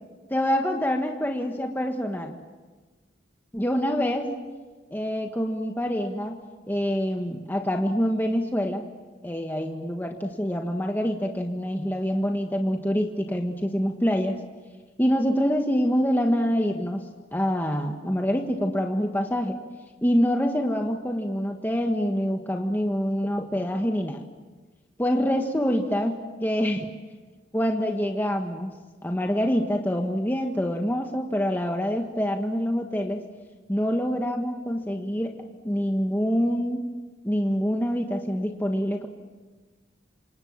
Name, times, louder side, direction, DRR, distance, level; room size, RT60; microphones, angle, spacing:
voice 1, 0.3-2.3 3.5-4.3 4.9-6.4 6.7-8.8 9.2-14.4 15.0-17.0 17.3-19.6 20.0-24.2 25.0-26.9 27.5-28.7 29.0-33.2 33.7-35.3 35.6-36.8 37.2-39.1, equal, 10° left, 2 dB, 1.4 m, -26 dB
28.5 x 26.5 x 7.4 m, 1.3 s
head